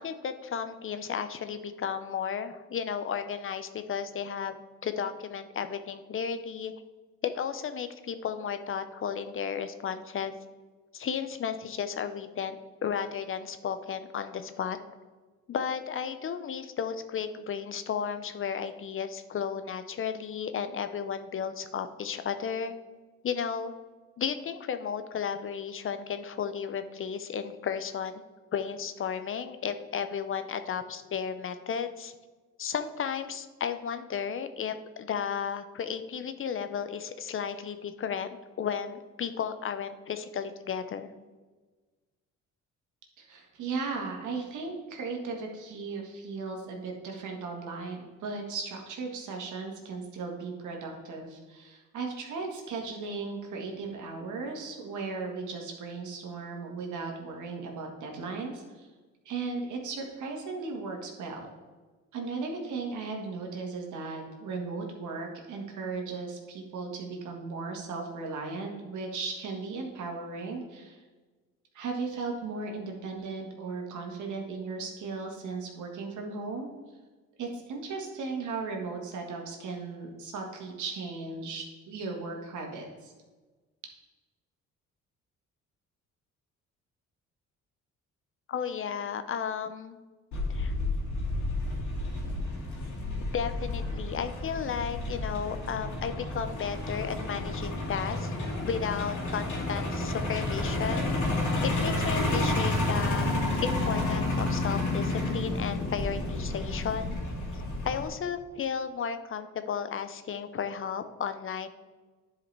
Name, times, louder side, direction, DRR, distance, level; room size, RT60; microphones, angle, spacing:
voice 1, 0.0-6.7 7.3-10.3 10.9-14.8 15.5-22.7 23.2-23.7 24.2-28.2 28.5-32.1 32.6-41.1 88.5-90.0 90.5-90.7 93.3-101.1 101.6-103.3 103.6-107.2 107.8-111.7, left 7 dB, 45° left, 10 dB, 0.6 m, -34 dB
voice 2, 43.2-58.9 59.2-61.5 62.1-71.0 71.7-76.7 77.4-83.1, right 4 dB, 75° right, 1 dB, 1.6 m, -36 dB
Truck, 90.3-108.1, left 2 dB, 70° left, 2.2 m, -31 dB
10.5 x 4.8 x 3.4 m, 1.3 s
cardioid pair, 90°, 30 cm